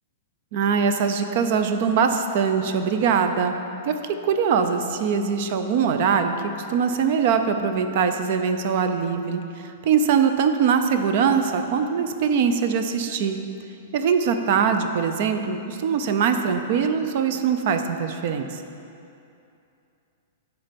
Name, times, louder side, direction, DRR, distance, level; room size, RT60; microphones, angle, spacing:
voice 1, 0.5-3.6 3.8-13.4 13.9-18.6, right 6 dB, 45° right, 8 dB, 0.5 m, -22 dB
9.8 x 4.0 x 5.2 m, 2.7 s
supercardioid pair, 170°, 0 cm